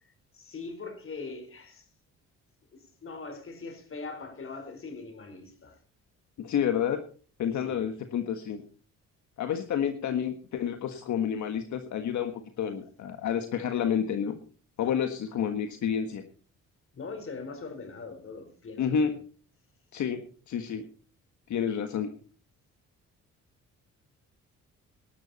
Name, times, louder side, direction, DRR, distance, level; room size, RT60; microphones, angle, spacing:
voice 1, 0.3-1.8 2.7-5.8 7.6-7.8 16.9-19.1, left 4 dB, 45° left, 4.4 m, -41 dB
voice 2, 6.4-7.0 7.4-8.6 9.4-12.3 12.6-14.4 14.8-16.2 18.8-19.1 19.9-20.2 20.5-20.8 21.5-22.1, left 8 dB, 70° left, 1.6 m, -29 dB
19.0 x 12.0 x 4.2 m
cardioid pair, 90°, 30 cm